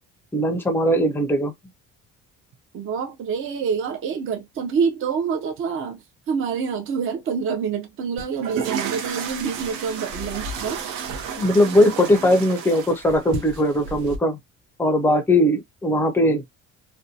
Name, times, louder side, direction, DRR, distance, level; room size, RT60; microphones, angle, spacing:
voice 1, 0.3-1.5 11.3-14.4 14.8-16.4, equal, 5° left, 0.4 m, -19 dB
voice 2, 2.7-10.8, right 6 dB, 45° right, 0.6 m, -27 dB
sound 1, 8.2-14.2, right 6 dB, 80° right, 0.7 m, -32 dB
2.6 x 2.2 x 2.6 m
cardioid pair, 150°, 30 cm